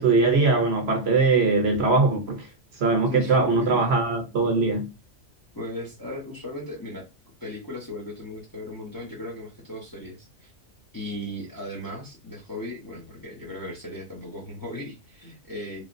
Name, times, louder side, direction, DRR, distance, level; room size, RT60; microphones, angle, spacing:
voice 1, 0.0-2.5 2.8-4.9, right 3 dB, 60° right, 0.9 m, -21 dB
voice 2, 3.1-3.8 5.5-7.1 7.4-10.5 10.9-15.8, left 1 dB, 20° left, 0.7 m, -37 dB
3.1 x 2.2 x 2.5 m
omnidirectional pair, 1.4 m